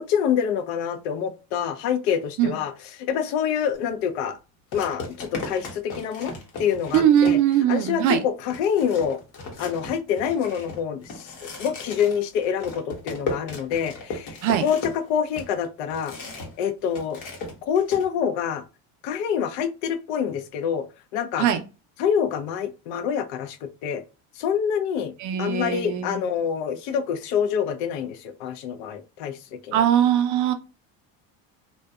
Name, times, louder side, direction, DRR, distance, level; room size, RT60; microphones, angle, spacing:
voice 1, 0.0-2.7 3.0-4.4 4.7-6.3 6.6-7.4 7.7-9.2 9.6-16.1 16.6-17.2 17.6-18.6 19.0-20.9 21.1-21.5 22.0-24.0 24.4-25.1 25.4-29.8, left 8 dB, 80° left, 0.6 m, -26 dB
sound 1, 3.7-3.9 4.7-7.7 8.1-8.2 8.5-16.6 16.9-18.1, left 3 dB, 60° left, 0.9 m, -36 dB
voice 2, 6.9-8.2 14.4-14.6 21.4-21.6 25.2-26.3 29.7-30.5, right 10 dB, 50° right, 0.5 m, -21 dB
2.6 x 2.2 x 2.2 m
cardioid pair, 130°, 39 cm